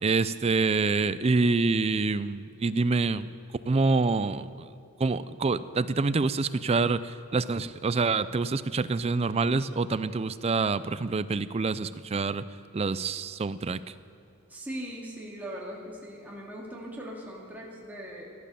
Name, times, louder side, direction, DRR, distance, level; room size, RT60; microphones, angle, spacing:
voice 1, 0.0-3.3 3.7-4.7 5.0-12.4 12.7-13.8, right 3 dB, 30° right, 15 dB, 0.4 m, -26 dB
voice 2, 14.5-18.3, equal, 10° right, -4 dB, 2.3 m, -40 dB
17.0 x 11.5 x 7.0 m, 2.6 s
head